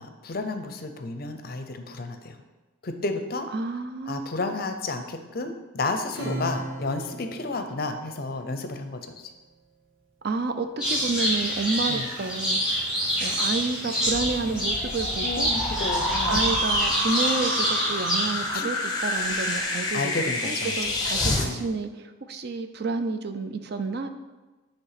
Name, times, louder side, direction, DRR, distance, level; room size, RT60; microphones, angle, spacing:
voice 1, 0.0-2.4 2.8-3.5 4.1-9.3 11.9-12.1 15.2-16.4 18.5-18.7 19.9-21.0 21.3-21.7, left 3 dB, 45° left, 7 dB, 0.5 m, -32 dB
voice 2, 3.5-4.6 10.2-12.6 13.2-15.5 16.3-24.1, right 3 dB, 50° right, 8 dB, 0.5 m, -30 dB
Acoustic guitar / Strum, 6.1-9.0, right 1 dB, 85° right, 2.3 m, -37 dB
sound 1, 10.8-18.5, equal, 5° right, 2.2 m, -26 dB
sound 2, 14.0-21.5, left 1 dB, 20° left, 0.9 m, -29 dB
8.3 x 3.4 x 5.7 m, 1.2 s
head